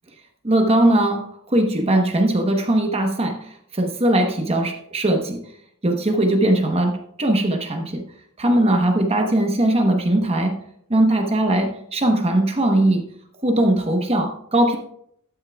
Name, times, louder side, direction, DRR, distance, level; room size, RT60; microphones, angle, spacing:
voice 1, 0.4-3.4 3.8-5.4 5.8-8.0 8.4-10.6 10.9-13.0 13.4-14.8, right 1 dB, 25° right, 4 dB, 1.0 m, -19 dB
12.5 x 9.4 x 2.3 m, 0.70 s
head